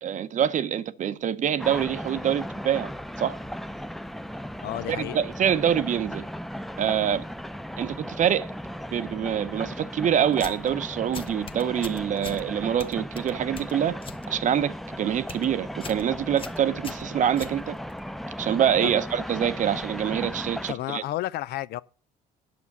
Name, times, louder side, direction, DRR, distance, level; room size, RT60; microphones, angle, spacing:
voice 1, 0.0-2.9 3.2-3.4 4.9-6.2 6.8-7.2 7.8-8.5 8.9-14.0 14.3-17.8 18.4-21.0, right 9 dB, 50° right, 0.7 m, -25 dB
sound 1, 1.6-20.7, equal, ahead, 0.4 m, -36 dB
voice 2, 4.6-5.2 18.8-18.9 20.7-21.8, left 14 dB, 75° left, 0.5 m, -31 dB
sound 2, 10.3-10.7 11.1-12.4 12.8-14.2 14.6-14.9 15.2-15.5 15.8-16.0 16.4-18.0, left 5 dB, 30° left, 1.0 m, -41 dB
9.6 x 7.0 x 6.0 m
cardioid pair, 110°, 17 cm